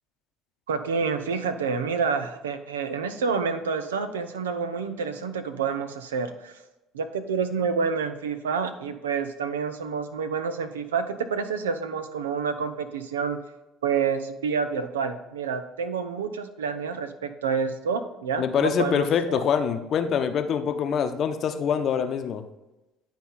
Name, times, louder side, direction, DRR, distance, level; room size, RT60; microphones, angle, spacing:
voice 1, 0.7-6.6 6.9-13.4 13.8-19.4, right 5 dB, 90° right, 10 dB, 0.6 m, -28 dB
voice 2, 18.4-22.4, left 7 dB, 55° left, 8 dB, 0.8 m, -25 dB
10.5 x 4.1 x 4.1 m, 0.99 s
hypercardioid pair, 65°, 0 cm